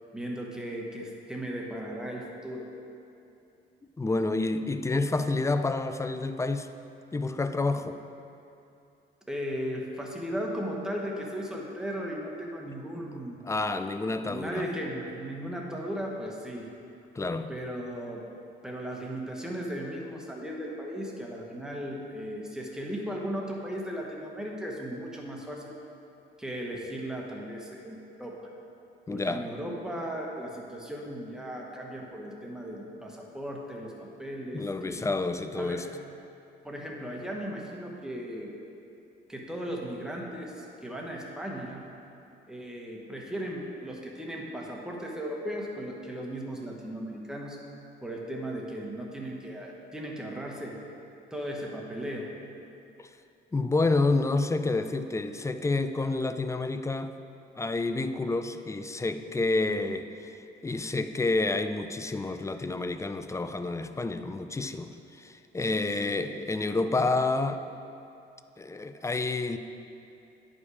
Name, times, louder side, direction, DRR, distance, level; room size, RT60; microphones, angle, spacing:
voice 1, 0.1-2.7 9.3-13.4 14.2-16.7 17.5-18.3 18.6-25.7 26.4-28.5 29.1-35.0 35.5-35.9 36.6-38.5 39.3-41.9 42.5-47.7 48.0-50.8 51.3-52.3 59.7-60.0 66.0-66.2, equal, 5° right, -2 dB, 1.3 m, -36 dB
voice 2, 4.0-6.7 7.1-8.0 13.0-14.7 17.1-17.5 29.1-29.4 34.5-35.9 53.0-53.1 53.5-57.1 57.6-60.3 60.6-67.6 68.6-69.6, left 3 dB, 15° left, 10 dB, 0.4 m, -29 dB
9.4 x 5.3 x 4.9 m, 2.7 s
cardioid pair, 90°, 20 cm